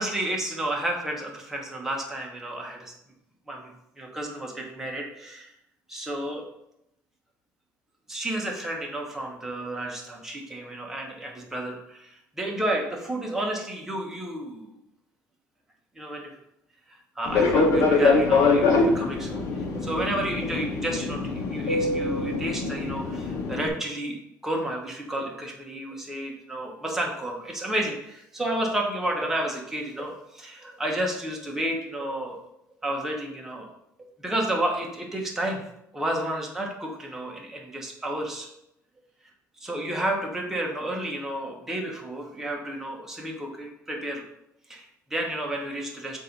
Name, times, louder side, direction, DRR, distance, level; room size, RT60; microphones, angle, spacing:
voice 1, 0.0-2.9 3.5-5.5 5.9-6.4 8.1-14.8 16.0-16.3 17.2-19.4 19.7-24.2 24.4-32.4 32.8-33.7 34.2-35.6 35.9-38.5 39.6-44.2 44.7-46.2, right 1 dB, 5° right, -1 dB, 1.1 m, -31 dB
Fixed-wing aircraft airplane, 17.3-23.7, left 3 dB, 55° left, 1.1 m, -24 dB
7.4 x 2.7 x 5.2 m, 0.80 s
cardioid pair, 165°, 6 cm